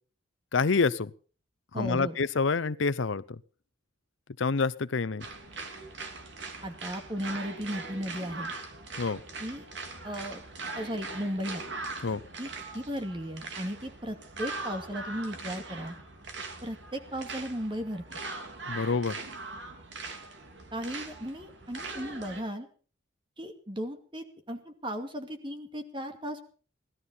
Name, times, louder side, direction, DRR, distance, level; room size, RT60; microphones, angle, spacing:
voice 1, 0.5-1.1 1.7-3.4 4.4-5.3 9.0-9.2 12.0-12.2 18.7-19.2, left 4 dB, 80° left, 17 dB, 0.7 m, -27 dB
voice 2, 1.7-2.2 6.6-8.5 9.4-9.7 10.0-10.4 10.8-11.6 12.4-12.5 12.7-16.0 16.6-18.2 20.7-22.7 23.4-26.5, equal, 25° right, 6 dB, 2.3 m, -36 dB
sound 1, 5.2-22.4, right 3 dB, 70° right, 2.9 m, -41 dB
18.0 x 13.0 x 5.6 m, 0.41 s
head